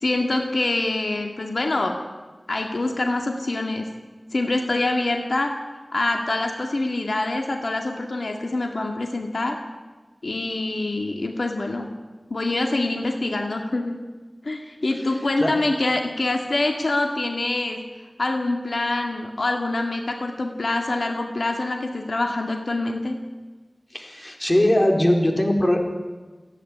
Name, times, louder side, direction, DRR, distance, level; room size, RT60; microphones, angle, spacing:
voice 1, 0.0-2.0 2.5-3.9 4.3-5.5 5.9-9.6 10.2-11.9 12.3-14.0 14.4-17.8 18.2-23.2, left 2 dB, 80° left, 3 dB, 2.1 m, -25 dB
voice 2, 23.9-25.8, left 1 dB, 30° left, 2 dB, 4.2 m, -20 dB
29.0 x 10.5 x 9.9 m, 1.3 s
wide cardioid pair, 55°, 0 cm